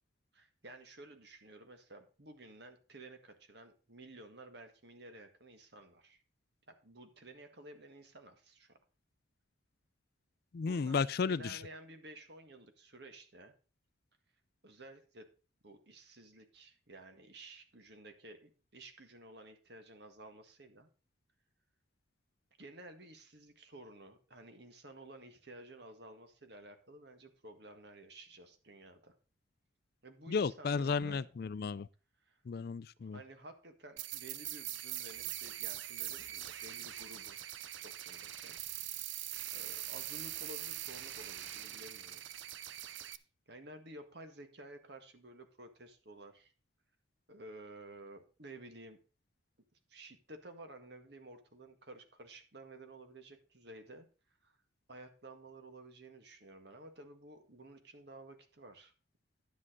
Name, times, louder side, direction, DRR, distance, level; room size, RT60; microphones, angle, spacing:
voice 1, 0.3-6.2 6.7-8.8 10.6-13.5 14.6-15.3 15.6-20.9 22.6-29.1 30.0-31.3 32.2-32.4 33.0-37.4 37.8-38.6 39.5-42.2 43.5-46.5 47.3-49.0 49.9-54.6 54.9-58.9, right 2 dB, 55° right, 1.8 m, -53 dB
voice 2, 10.5-11.6 30.3-31.9 32.5-33.2, left 5 dB, 50° left, 0.4 m, -33 dB
sound 1, 34.0-43.2, right 13 dB, 70° right, 0.6 m, -42 dB
11.0 x 7.6 x 3.9 m
head